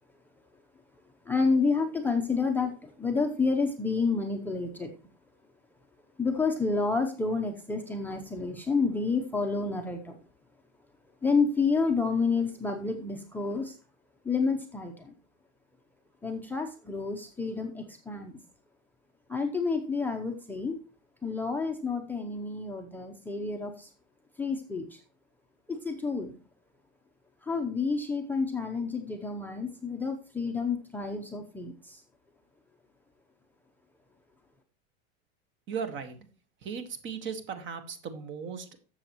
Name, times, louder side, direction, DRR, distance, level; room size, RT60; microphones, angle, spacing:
voice 1, 1.3-4.9 6.2-10.2 11.2-13.8 14.2-15.1 16.2-18.4 19.3-20.8 21.2-23.9 24.4-25.0 25.7-26.3 27.4-32.0, left 4 dB, 5° left, 2 dB, 0.7 m, -29 dB
voice 2, 35.7-36.3 36.6-38.8, right 6 dB, 35° right, 9 dB, 1.6 m, -37 dB
12.5 x 7.0 x 3.0 m, 0.37 s
supercardioid pair, 145°, 33 cm